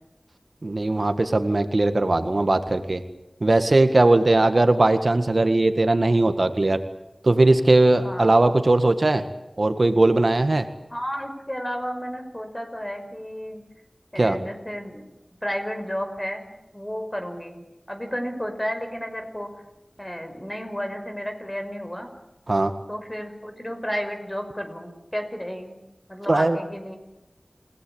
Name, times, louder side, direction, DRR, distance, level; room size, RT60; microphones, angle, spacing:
voice 1, 0.6-3.0 3.4-6.8 7.2-9.2 9.6-10.7 14.2-14.4 22.5-22.7 26.3-26.6, right 2 dB, 65° right, 8 dB, 1.8 m, -19 dB
voice 2, 7.9-8.3 10.9-13.6 14.1-15.0 15.4-16.4 16.7-19.5 20.0-22.1 22.9-25.7 26.1-27.0, equal, 15° left, 6 dB, 5.8 m, -32 dB
29.0 x 18.5 x 8.8 m, 0.96 s
wide cardioid pair, 55°, 0 cm